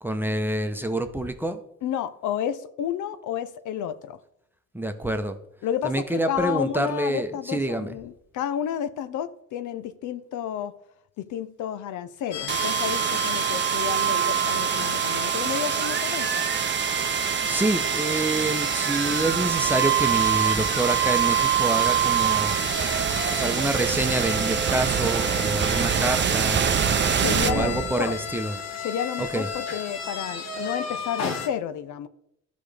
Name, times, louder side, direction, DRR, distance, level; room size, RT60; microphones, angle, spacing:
voice 1, 0.0-1.6 4.7-5.4 5.8-8.0 17.4-22.6 23.3-26.6 27.3-28.6 29.2-29.5, right 1 dB, 5° right, 0.8 m, -27 dB
voice 2, 1.8-4.2 5.6-10.7 11.2-16.5 27.2-28.2 28.8-32.1, left 9 dB, 80° left, 0.6 m, -31 dB
sound 1, 12.3-31.5, left 5 dB, 60° left, 1.4 m, -34 dB
sound 2, 12.5-28.3, right 9 dB, 40° right, 0.6 m, -24 dB
13.0 x 5.1 x 3.4 m
cardioid pair, 90°, 30 cm